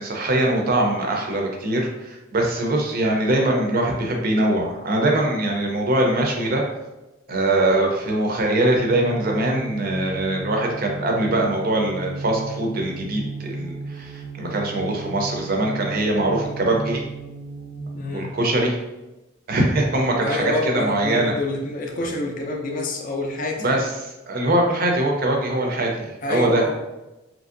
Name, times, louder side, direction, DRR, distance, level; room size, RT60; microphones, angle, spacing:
voice 1, 0.0-6.6 7.3-17.1 18.1-18.7 19.5-21.3 23.6-23.8 24.3-26.6, right 1 dB, 45° right, 1 dB, 0.4 m, -22 dB
sound 1, 8.8-18.1, right 3 dB, 90° right, 0.6 m, -34 dB
voice 2, 17.9-18.3 20.2-23.7 26.2-26.7, left 2 dB, 40° left, 2 dB, 0.4 m, -27 dB
2.9 x 2.5 x 2.5 m, 1.0 s
head